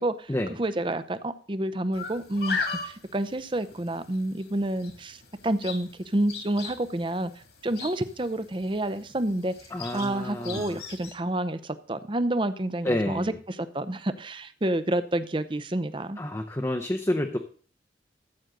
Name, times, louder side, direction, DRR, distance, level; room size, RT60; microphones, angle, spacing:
voice 1, 0.6-7.3 7.6-9.5 9.9-16.2, right 1 dB, 30° right, 12 dB, 0.6 m, -29 dB
sound 1, 1.9-11.1, left 4 dB, 70° left, 2.5 m, -38 dB
voice 2, 9.7-10.8 12.8-13.4 16.2-17.4, left 1 dB, 15° left, 3 dB, 0.7 m, -29 dB
14.0 x 7.9 x 3.8 m, 0.41 s
head